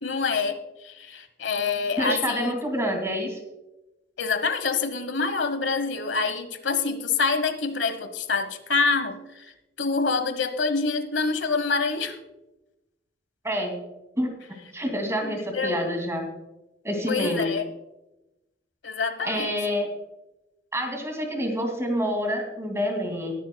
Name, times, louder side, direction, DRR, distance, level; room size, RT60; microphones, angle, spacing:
voice 1, 0.0-2.5 4.2-9.5 9.8-12.2 15.2-15.9 17.1-17.6 18.8-19.6, left 4 dB, 85° left, 10 dB, 1.2 m, -26 dB
voice 2, 2.0-3.4 13.4-13.8 14.2-14.3 14.7-16.3 16.8-17.5 19.2-19.9 20.7-23.3, equal, 15° right, 3 dB, 2.4 m, -27 dB
20.0 x 11.0 x 2.3 m, 0.96 s
head